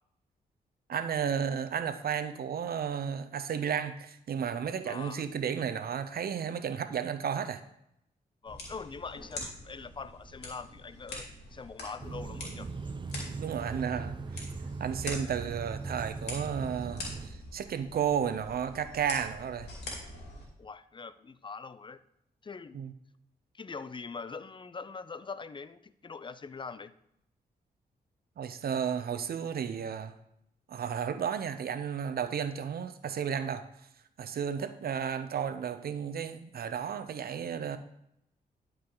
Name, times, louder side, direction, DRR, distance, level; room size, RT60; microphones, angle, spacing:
voice 1, 0.9-7.6 13.4-14.4 14.8-19.7 22.7-22.9 28.4-30.1 30.7-33.7 34.2-37.8, right 8 dB, 65° right, 11 dB, 0.7 m, -33 dB
voice 2, 4.9-5.3 8.4-12.7 20.6-22.0 22.4-22.9 23.5-26.9, left 4 dB, 30° left, 15 dB, 0.5 m, -43 dB
sound 1, 8.5-20.5, left 2 dB, 85° left, 2.4 m, -44 dB
sound 2, 12.0-17.3, right 4 dB, 30° right, 0.5 m, -39 dB
11.0 x 4.8 x 3.9 m, 0.77 s
cardioid pair, 65°, 17 cm